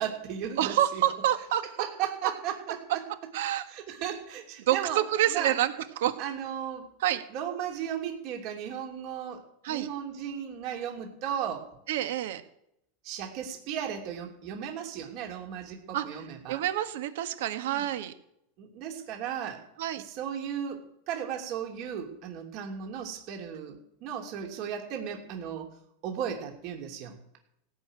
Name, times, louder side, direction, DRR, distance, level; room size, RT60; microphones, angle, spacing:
voice 1, 0.0-1.0 1.8-3.0 3.7-5.0 5.3-5.6 6.2-6.9 7.3-9.4 9.7-11.6 13.0-16.6 17.7-17.8 18.6-19.6 20.0-25.7 26.0-27.4, right 9 dB, 55° right, 2 dB, 3.0 m, -35 dB
voice 2, 0.6-1.6 2.9-3.0 3.3-3.6 4.6-6.2 7.0-7.2 9.6-9.9 11.9-12.4 15.9-18.1 19.8-20.0, right 12 dB, 80° right, 9 dB, 1.6 m, -28 dB
17.0 x 6.6 x 9.1 m, 0.77 s
supercardioid pair, 125°, 0 cm